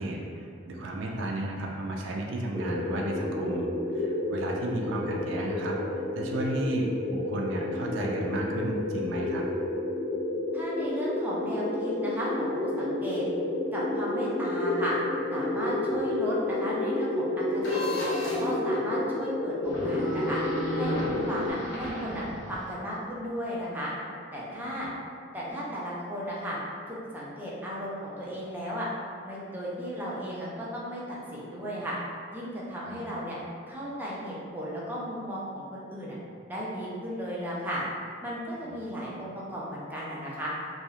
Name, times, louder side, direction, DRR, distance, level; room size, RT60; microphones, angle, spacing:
voice 1, 0.0-5.8 6.2-9.4 32.9-33.0 38.6-38.7, right 1 dB, 75° right, -1 dB, 0.3 m, -33 dB
sound 1, 2.5-21.5, left 2 dB, 20° left, 1.0 m, -30 dB
voice 2, 10.5-13.2 13.7-15.0 15.3-17.9 18.2-20.4 20.7-23.9 24.3-24.9 25.3-26.6 26.9-28.9 29.2-32.0 32.3-33.4 33.7-36.2 36.5-37.8 38.2-40.5, equal, 10° right, -6 dB, 0.4 m, -35 dB
sound 2, 17.6-18.5 19.6-22.7, equal, 75° left, 0.6 m, -34 dB
2.8 x 2.0 x 2.3 m, 2.3 s
head